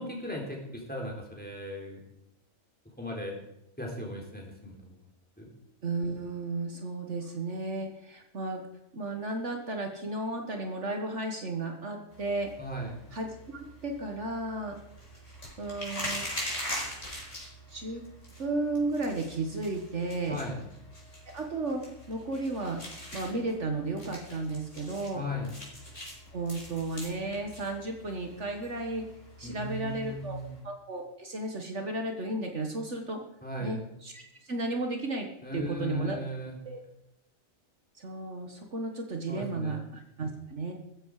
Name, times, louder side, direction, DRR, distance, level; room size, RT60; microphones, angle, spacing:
voice 1, 0.0-2.0 3.0-3.4 3.8-5.0 5.4-5.5 12.6-13.0 20.3-20.6 25.1-25.5 29.4-30.6 33.4-33.8 35.4-36.6 39.3-39.8, left 1 dB, 5° left, 0 dB, 3.9 m, -37 dB
voice 2, 5.8-8.6 8.9-12.5 13.1-14.8 15.6-16.3 17.7-18.0 18.4-20.4 21.3-25.2 26.3-29.1 29.4-30.4 30.6-33.2 33.6-35.3 35.5-36.2 36.7-36.8 38.0-40.7, right 2 dB, 60° right, 3 dB, 1.9 m, -34 dB
sound 1, 12.1-30.6, equal, 60° left, 5.5 m, -43 dB
15.5 x 14.0 x 4.9 m, 0.84 s
omnidirectional pair, 1.4 m